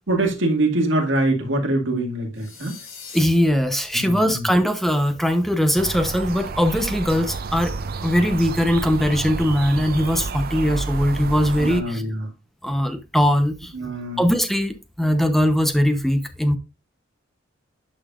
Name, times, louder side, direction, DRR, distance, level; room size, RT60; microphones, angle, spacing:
voice 1, 0.1-2.8 3.9-4.5 11.6-12.3 13.7-14.2, right 2 dB, 70° right, 2.1 m, -24 dB
sound 1, 2.3-3.2, left 6 dB, 75° left, 2.2 m, -40 dB
voice 2, 3.1-7.7 8.0-12.0 12.6-13.5 14.2-16.6, equal, ahead, 0.8 m, -20 dB
sound 2, 5.8-11.8, right 4 dB, 50° right, 0.5 m, -30 dB
10.0 x 5.6 x 2.5 m
head